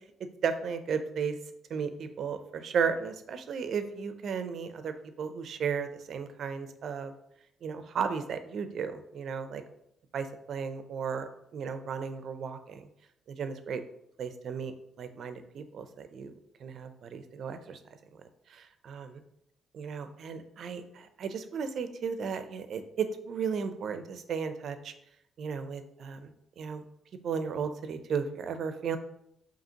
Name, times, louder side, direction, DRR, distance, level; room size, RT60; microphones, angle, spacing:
voice 1, 0.4-1.4 1.7-7.1 7.6-9.6 10.1-12.8 13.3-13.8 14.2-16.3 16.6-17.8 18.5-19.2 19.7-24.9 25.4-26.3 26.6-26.8 27.2-29.0, right 6 dB, 65° right, 9 dB, 0.4 m, -34 dB
5.0 x 2.7 x 2.8 m, 0.76 s
cardioid pair, 90°, 0 cm